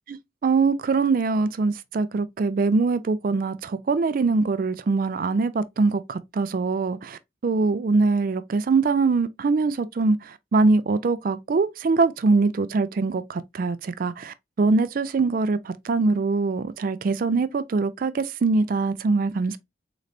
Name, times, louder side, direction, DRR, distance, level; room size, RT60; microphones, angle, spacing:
voice 1, 0.4-19.6, right 3 dB, 45° right, 0.3 m, -23 dB
4.0 x 3.2 x 2.4 m
head